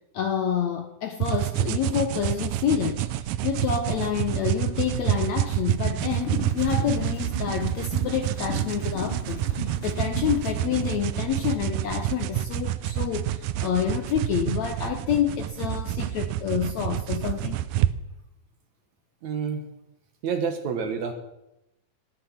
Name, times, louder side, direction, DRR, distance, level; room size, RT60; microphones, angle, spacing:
voice 1, 0.1-17.6, left 8 dB, 75° left, 6 dB, 1.7 m, -28 dB
sound 1, 1.2-17.9, right 13 dB, 80° right, 2.1 m, -28 dB
sound 2, 6.1-10.9, left 1 dB, 35° left, 2.9 m, -35 dB
voice 2, 19.2-19.7 20.2-21.1, right 6 dB, 60° right, 6 dB, 2.3 m, -28 dB
19.5 x 10.5 x 5.8 m, 0.89 s
omnidirectional pair, 4.1 m